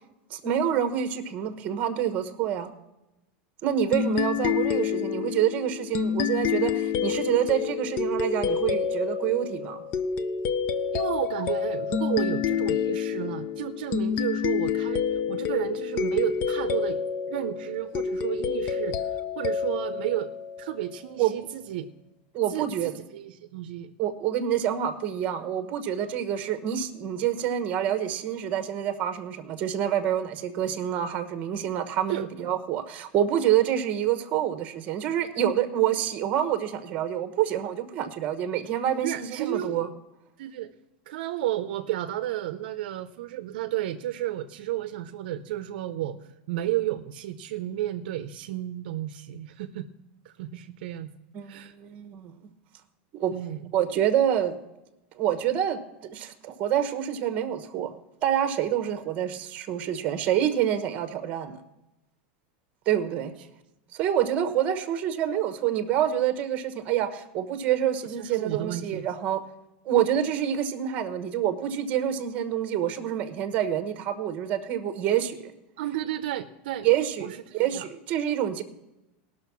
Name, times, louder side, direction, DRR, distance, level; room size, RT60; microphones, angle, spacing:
voice 1, 0.3-2.7 3.6-9.8 21.2-21.4 22.3-23.0 24.0-39.9 51.3-52.3 53.2-53.3 53.7-54.6 55.2-55.8 56.1-57.9 58.2-61.6 62.9-63.3 63.9-69.4 69.8-75.5 76.8-78.6, right 10 dB, 30° right, 10 dB, 1.1 m, -27 dB
sound 1, 3.9-21.1, left 7 dB, 30° left, 0.5 m, -28 dB
voice 2, 10.9-17.0 17.3-20.3 20.6-21.9 22.5-23.9 32.1-32.3 39.0-39.8 40.4-40.7 41.1-46.2 46.5-49.9 50.2-51.1 51.5-51.7 53.3-53.7 68.2-69.0 75.8-76.9 77.2-77.8, right 13 dB, 65° right, 9 dB, 0.6 m, -32 dB
18.0 x 6.3 x 6.0 m, 0.95 s
supercardioid pair, 165°, 5 cm